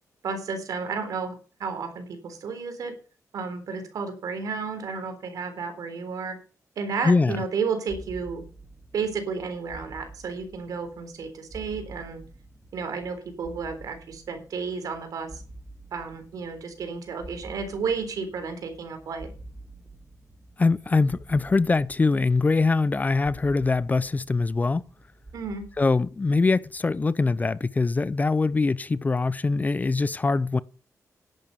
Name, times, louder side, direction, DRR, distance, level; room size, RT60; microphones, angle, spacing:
voice 1, 0.2-1.3 1.6-2.9 3.3-6.4 6.8-8.4 8.9-12.2 12.7-15.4 15.9-19.3 25.3-25.6, right 5 dB, 75° right, 3.8 m, -32 dB
voice 2, 7.0-7.4 20.6-24.8 25.8-30.6, left 3 dB, 25° left, 0.6 m, -23 dB
sound 1, 7.9-26.8, right 1 dB, 20° right, 3.2 m, -48 dB
11.0 x 8.8 x 6.8 m
cardioid pair, 95°, 6 cm